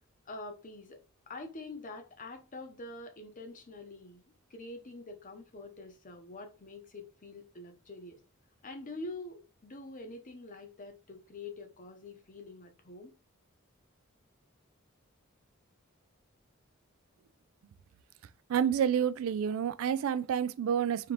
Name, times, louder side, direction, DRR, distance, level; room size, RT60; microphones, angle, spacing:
voice 1, 0.3-4.2 4.5-8.2 8.6-13.2, left 2 dB, 40° left, 0.8 m, -46 dB
voice 2, 18.5-21.1, right 8 dB, 75° right, 0.3 m, -29 dB
3.8 x 2.9 x 3.2 m
head